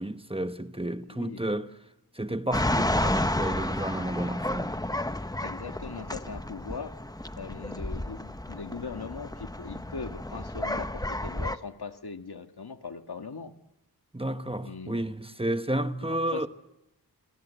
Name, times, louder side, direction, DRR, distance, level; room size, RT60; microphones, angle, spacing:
voice 1, 0.0-1.7 2.1-4.8 14.1-16.5, right 1 dB, 15° right, 1.2 m, -31 dB
voice 2, 1.1-1.4 5.4-6.9 7.4-13.5 14.6-15.0 15.7-16.5, left 5 dB, 75° left, 1.8 m, -40 dB
sound 1, 2.5-11.6, left 1 dB, 10° left, 0.9 m, -31 dB
27.0 x 24.5 x 8.2 m
wide cardioid pair, 60°, 39 cm